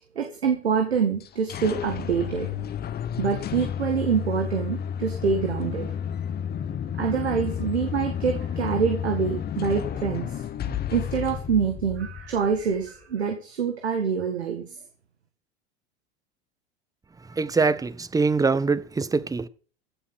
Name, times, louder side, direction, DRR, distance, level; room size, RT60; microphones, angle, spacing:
voice 1, 0.2-2.5 3.2-5.9 7.0-10.3 10.6-14.8, right 6 dB, 80° right, 2.0 m, -26 dB
sound 1, 1.2-12.8, left 8 dB, 30° left, 1.3 m, -31 dB
voice 2, 17.2-19.5, right 4 dB, 10° right, 0.9 m, -24 dB
15.5 x 7.1 x 6.2 m
figure-of-eight pair, 80°, 32 cm